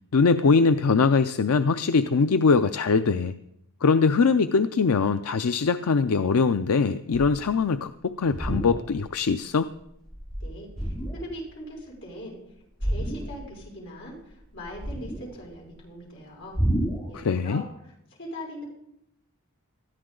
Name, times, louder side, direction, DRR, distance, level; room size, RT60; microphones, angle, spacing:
voice 1, 0.1-3.4 3.8-9.7 17.1-17.6, left 4 dB, 80° left, 11 dB, 0.5 m, -22 dB
sound 1, 7.1-7.5 8.2-9.1 9.5-9.8 10.1-11.4 12.8-13.6 13.9-15.5 16.5-17.1, right 1 dB, 25° left, 5.4 m, -30 dB
voice 2, 10.4-12.4 12.8-16.6 17.1-17.9 18.2-18.6, equal, 55° left, -3 dB, 6.0 m, -40 dB
20.0 x 13.5 x 3.8 m, 0.79 s
head